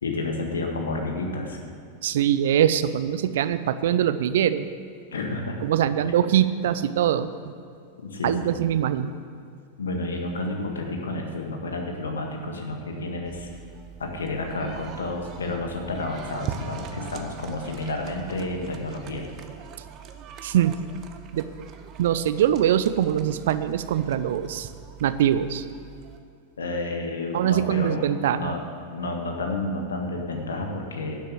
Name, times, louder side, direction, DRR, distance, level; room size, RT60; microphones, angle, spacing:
voice 1, 0.0-1.6 5.1-5.6 8.0-8.5 9.8-13.5 14.0-19.2 26.6-28.6 28.9-31.2, left 2 dB, 70° left, 2 dB, 1.7 m, -30 dB
voice 2, 2.0-4.7 5.6-7.3 8.2-9.1 20.4-20.8 21.3-21.5 22.0-24.7 25.0-25.6 27.3-28.5, right 10 dB, 55° right, 13 dB, 0.5 m, -23 dB
sound 1, 13.3-26.2, right 7 dB, 35° right, 0.9 m, -42 dB
12.0 x 7.5 x 7.9 m, 2.4 s
figure-of-eight pair, 90°, 0 cm